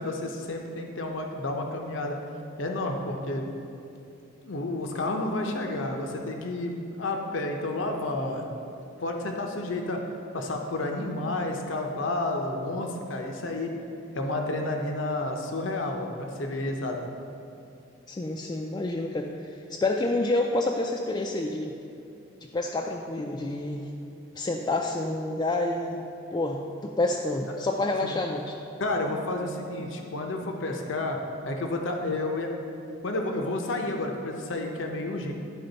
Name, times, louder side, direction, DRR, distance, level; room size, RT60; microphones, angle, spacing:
voice 1, 0.0-2.2 2.6-3.5 4.4-8.5 9.0-10.0 10.3-13.7 14.1-17.0 27.6-27.7 28.0-28.1 28.8-31.2 31.4-32.5 33.0-35.3, left 2 dB, 75° left, 2 dB, 0.7 m, -30 dB
voice 2, 18.1-21.7 22.5-23.9 24.4-28.6, left 2 dB, 20° left, 0 dB, 0.3 m, -28 dB
11.5 x 4.3 x 4.0 m, 2.7 s
head